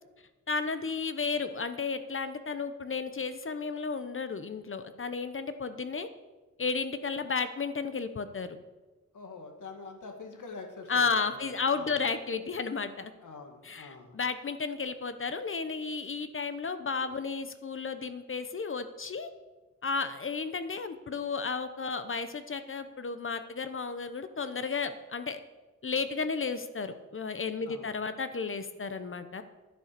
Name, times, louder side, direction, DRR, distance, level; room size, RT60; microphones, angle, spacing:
voice 1, 0.5-6.1 6.6-8.6 10.9-13.1 13.6-19.3 19.8-25.4 25.8-29.4, left 4 dB, 45° left, 10 dB, 0.8 m, -33 dB
voice 2, 9.1-11.4 11.7-12.0 13.2-14.2 27.7-28.0, left 4 dB, 85° left, 3 dB, 2.0 m, -45 dB
11.0 x 10.0 x 6.7 m, 1.2 s
wide cardioid pair, 125°, 30 cm